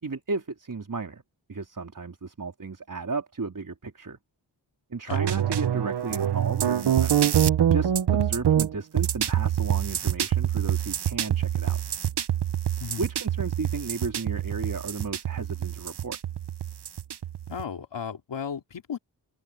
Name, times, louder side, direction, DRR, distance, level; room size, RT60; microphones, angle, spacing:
voice 1, 0.0-1.2 1.5-4.2 4.9-11.8 13.0-16.2, right 4 dB, 45° right, 3.7 m, -34 dB
sound 1, 5.1-17.6, right 10 dB, 65° right, 1.0 m, -25 dB
voice 2, 17.5-19.0, left 7 dB, 80° left, 3.1 m, -34 dB
cardioid pair, 65°, 43 cm